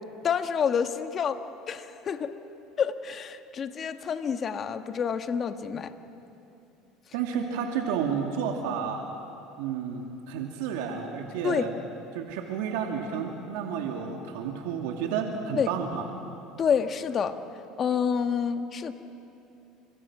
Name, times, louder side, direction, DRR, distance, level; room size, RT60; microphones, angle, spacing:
voice 1, 0.2-1.4 1.7-2.3 2.8-5.9 11.4-11.7 15.5-15.7 16.6-17.4 17.8-18.9, left 7 dB, 35° left, 8 dB, 1.4 m, -28 dB
voice 2, 7.1-9.0 9.6-11.7 12.1-16.1, right 7 dB, 80° right, 2 dB, 2.3 m, -31 dB
29.5 x 25.5 x 6.1 m, 2.8 s
supercardioid pair, 120°, 0 cm